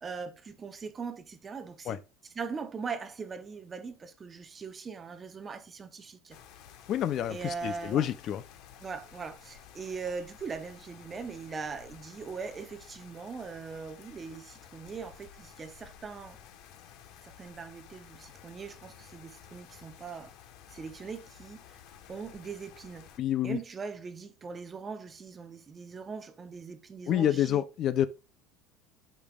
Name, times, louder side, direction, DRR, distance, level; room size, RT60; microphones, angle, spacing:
voice 1, 0.0-2.0 2.3-6.4 7.3-8.1 8.8-16.4 17.2-20.3 20.7-21.8 22.1-23.1 23.4-27.6, right 5 dB, 20° right, 0.7 m, -40 dB
sound 1, 6.3-23.2, left 9 dB, 55° left, 1.0 m, -53 dB
voice 2, 6.9-8.4 23.2-23.6 27.1-28.1, left 11 dB, 35° left, 0.4 m, -28 dB
12.0 x 5.2 x 2.3 m
cardioid pair, 170°, 0 cm